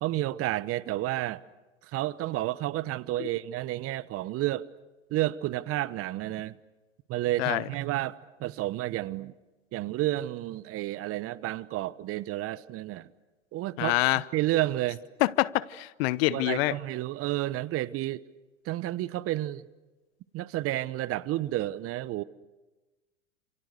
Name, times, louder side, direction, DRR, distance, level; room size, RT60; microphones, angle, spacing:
voice 1, 0.0-1.4 1.8-4.6 5.1-6.6 7.1-9.3 9.7-13.1 13.5-15.0 16.3-18.3 18.6-19.7 20.3-22.2, right 16 dB, 35° right, 1.1 m, -31 dB
voice 2, 13.8-14.2 15.2-16.8, left 19 dB, 55° left, 1.0 m, -26 dB
29.5 x 28.5 x 6.8 m
hypercardioid pair, 95°, 37 cm